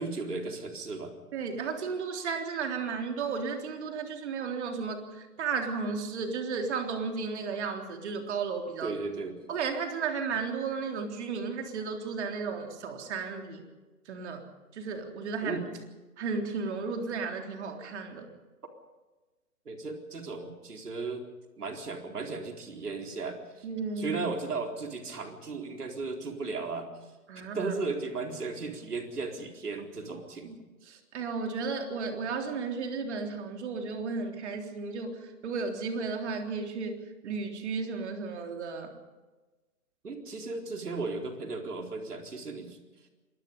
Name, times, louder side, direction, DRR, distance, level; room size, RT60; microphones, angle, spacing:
voice 1, 0.0-1.2 8.8-9.4 15.4-15.7 19.7-21.2 21.6-23.7 24.0-26.9 27.5-30.5 40.0-42.8, right 3 dB, 75° right, 3 dB, 4.3 m, -35 dB
voice 2, 1.3-8.9 9.5-13.6 14.1-14.4 14.7-15.6 16.2-18.3 23.6-24.2 27.3-27.7 30.1-30.2 30.4-30.6 30.9-38.9, right 5 dB, 45° right, 4 dB, 3.7 m, -34 dB
26.0 x 20.5 x 5.4 m, 1.2 s
figure-of-eight pair, 135°, 46 cm